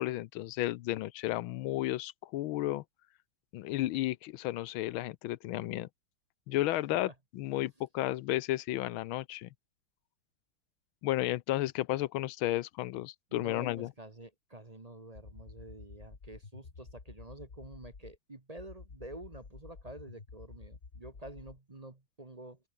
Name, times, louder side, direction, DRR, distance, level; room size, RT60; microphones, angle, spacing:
voice 1, 0.0-2.8 3.5-5.9 6.5-9.5 11.0-13.9, left 15 dB, 90° left, 1.5 m, -33 dB
voice 2, 13.3-22.6, right 1 dB, 20° right, 1.5 m, -49 dB
sound 1, 15.2-18.2 18.6-21.6, left 4 dB, 35° left, 2.4 m, -50 dB
open air
omnidirectional pair, 2.2 m